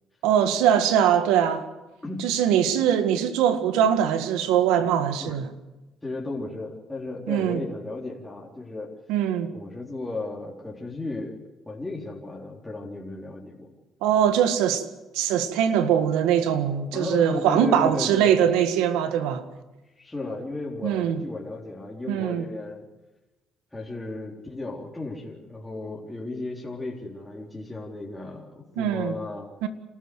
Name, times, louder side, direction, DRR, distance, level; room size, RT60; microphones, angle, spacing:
voice 1, 0.2-1.6 2.2-5.5 7.3-7.6 9.1-9.5 14.0-14.9 15.1-19.4 20.8-21.2 22.1-22.4 28.8-29.1 29.6-29.7, right 9 dB, 90° right, 1.8 m, -22 dB
voice 2, 6.0-8.9 9.5-11.4 11.7-13.7 16.9-18.5 20.0-22.8 23.7-29.5, left 2 dB, 10° left, 3.9 m, -34 dB
28.0 x 13.5 x 8.0 m
cardioid pair, 95°, 0 cm